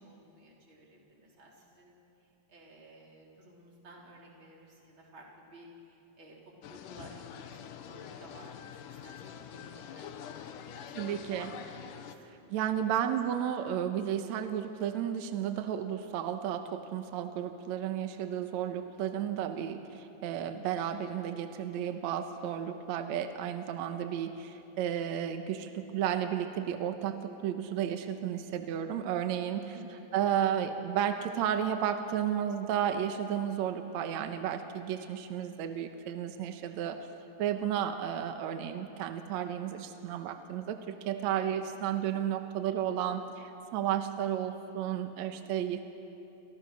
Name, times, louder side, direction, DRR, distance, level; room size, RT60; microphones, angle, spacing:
voice 1, 0.0-2.0 2.2-6.4 6.6-10.9 11.4-11.6 11.9-12.9 29.7-30.2 41.3-41.7, right 1 dB, 30° right, -2 dB, 4.3 m, -55 dB
sound 1, 6.6-12.2, left 8 dB, 70° left, 2.3 m, -45 dB
voice 2, 10.9-11.5 12.5-29.7 30.1-37.0 37.4-45.8, right 9 dB, 70° right, 7 dB, 1.7 m, -33 dB
30.0 x 25.5 x 6.4 m, 2.9 s
omnidirectional pair, 4.6 m